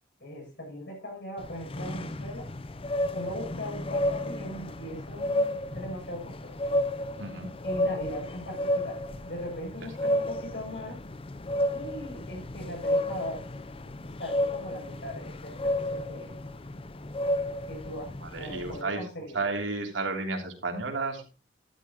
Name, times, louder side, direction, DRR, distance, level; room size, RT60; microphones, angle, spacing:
voice 1, 0.2-2.5 3.1-6.5 7.6-11.0 11.7-13.5 13.8-13.9 14.2-16.3 17.7-19.4, left 1 dB, 60° left, 0 dB, 7.7 m, -39 dB
sound 1, 1.4-18.8, left 1 dB, 30° left, 0.6 m, -32 dB
voice 2, 7.2-7.5 18.2-21.3, right 3 dB, 85° right, 3 dB, 3.1 m, -32 dB
13.0 x 12.0 x 3.0 m, 0.33 s
head